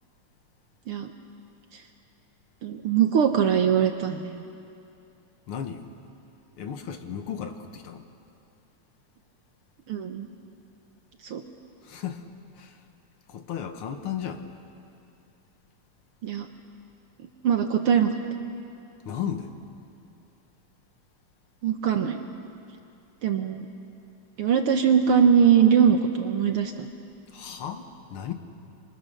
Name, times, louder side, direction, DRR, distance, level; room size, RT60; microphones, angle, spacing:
voice 1, 2.6-4.4 9.9-10.3 11.2-11.4 16.2-16.5 17.4-18.2 21.6-22.2 23.2-23.6 24.4-26.9, right 7 dB, 65° right, 5 dB, 1.5 m, -22 dB
voice 2, 5.5-5.9 6.6-8.1 11.8-12.2 12.6-12.8 13.3-14.4 19.1-19.5 27.3-28.3, left 8 dB, 55° left, 7 dB, 1.7 m, -34 dB
26.5 x 26.5 x 6.7 m, 2.6 s
omnidirectional pair, 3.5 m